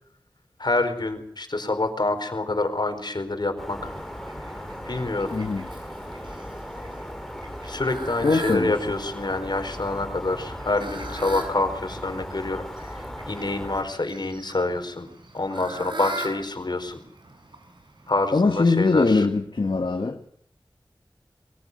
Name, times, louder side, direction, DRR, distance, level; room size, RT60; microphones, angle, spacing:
voice 1, 0.6-3.9 4.9-5.3 7.6-15.1 15.3-17.0 18.1-19.3, left 2 dB, 60° left, 4.5 m, -27 dB
sound 1, 3.6-13.8, equal, 5° left, 3.7 m, -37 dB
Fowl, 3.8-19.2, right 2 dB, 70° right, 6.5 m, -41 dB
voice 2, 5.3-5.6 8.2-8.7 18.3-20.2, left 3 dB, 75° left, 1.7 m, -21 dB
22.5 x 15.5 x 9.4 m
wide cardioid pair, 55°, 8 cm